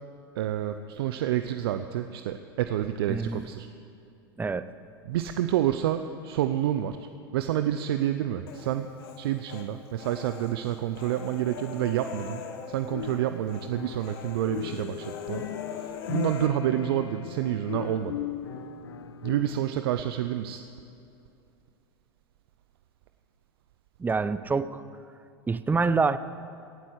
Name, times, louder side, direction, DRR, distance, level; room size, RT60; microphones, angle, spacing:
voice 1, 0.4-3.7 5.0-8.9 9.2-12.4 12.7-15.5 15.8-18.2 19.2-20.6, right 11 dB, 70° right, 10 dB, 0.6 m, -28 dB
voice 2, 3.1-3.4 4.4-4.7 24.0-24.8 25.5-26.2, right 4 dB, 15° right, 14 dB, 0.6 m, -26 dB
Human voice, 8.5-9.7 10.0-13.2 13.5-13.7 14.0-16.5, left 7 dB, 65° left, 1.5 m, -41 dB
sound 1, 12.9-14.2 14.5-19.8, left 10 dB, 80° left, 0.7 m, -37 dB
17.5 x 7.9 x 8.0 m, 2.6 s
hypercardioid pair, 100°, 13 cm